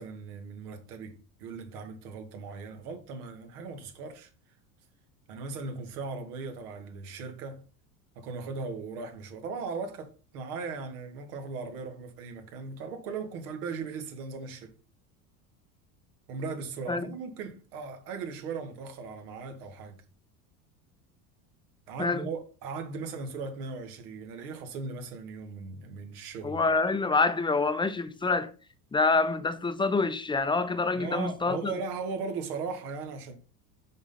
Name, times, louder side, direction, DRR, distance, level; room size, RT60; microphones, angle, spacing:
voice 1, 0.0-4.3 5.3-7.6 8.2-14.7 16.3-20.0 21.9-26.6 30.9-33.3, right 4 dB, 90° right, 1.7 m, -38 dB
voice 2, 26.4-28.5 28.9-31.7, left 3 dB, 10° left, 0.5 m, -26 dB
6.3 x 4.0 x 5.5 m
supercardioid pair, 110°, 45 cm